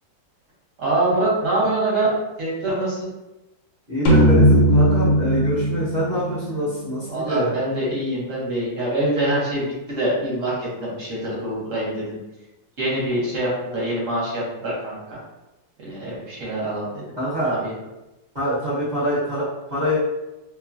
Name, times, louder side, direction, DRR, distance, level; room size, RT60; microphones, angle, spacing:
voice 1, 0.8-2.1 2.4-3.1 7.1-12.2 12.8-15.2 15.8-17.2 17.4-17.7, right 1 dB, 50° right, -6 dB, 1.1 m, -25 dB
voice 2, 3.9-7.5 17.1-17.6 18.3-20.0, equal, 35° right, -11 dB, 0.7 m, -25 dB
sound 1, 4.1-7.6, equal, 75° left, 1.2 m, -18 dB
3.1 x 2.2 x 2.4 m, 0.98 s
omnidirectional pair, 2.0 m